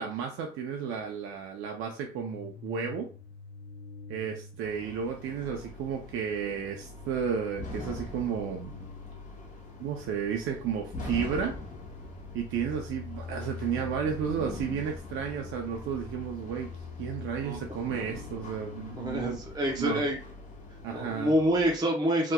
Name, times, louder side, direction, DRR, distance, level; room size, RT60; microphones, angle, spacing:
voice 1, 0.0-3.1 4.1-8.8 9.8-11.6 12.3-16.7 17.0-19.4 19.8-20.1 20.8-21.3, right 7 dB, 85° right, 3 dB, 0.5 m, -33 dB
sound 1, 2.1-21.3, left 5 dB, 65° left, 0.6 m, -46 dB
sound 2, 4.6-21.8, left 1 dB, 40° left, 1.1 m, -44 dB
voice 2, 18.9-20.2 20.9-22.3, equal, 20° right, -1 dB, 0.8 m, -27 dB
3.5 x 2.9 x 2.2 m, 0.36 s
cardioid pair, 90°, 20 cm